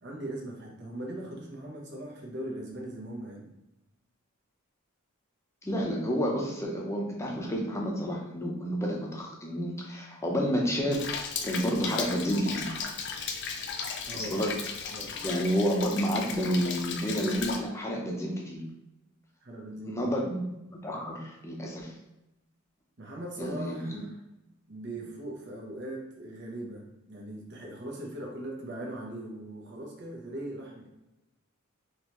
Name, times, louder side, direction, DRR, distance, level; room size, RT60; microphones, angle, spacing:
voice 1, 0.0-3.5 14.0-14.4 14.9-15.3 19.4-20.2 23.0-24.1 24.7-30.9, right 1 dB, 55° right, -1 dB, 1.0 m, -40 dB
voice 2, 5.6-12.8 14.1-14.5 15.2-18.6 19.8-21.9 23.4-24.0, equal, 15° left, -1 dB, 0.7 m, -30 dB
Rain, 10.9-17.6, left 5 dB, 55° left, 0.5 m, -36 dB
3.9 x 3.0 x 3.0 m, 0.92 s
head